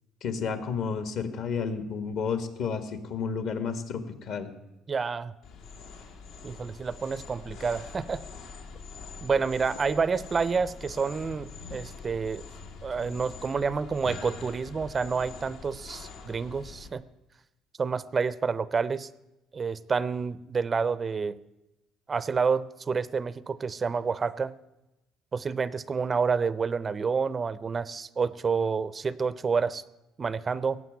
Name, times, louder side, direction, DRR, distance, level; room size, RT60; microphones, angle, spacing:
voice 1, 0.2-4.5, left 6 dB, 60° left, 10 dB, 1.6 m, -31 dB
voice 2, 4.9-5.3 6.4-8.2 9.2-12.4 12.8-17.0 17.8-19.1 19.5-21.4 22.1-24.5 25.3-29.8 30.2-30.8, right 5 dB, 25° right, 18 dB, 0.4 m, -29 dB
sound 1, 5.4-16.9, left 4 dB, 85° left, 2.3 m, -44 dB
17.5 x 7.4 x 9.2 m, 0.96 s
cardioid pair, 140°, 0 cm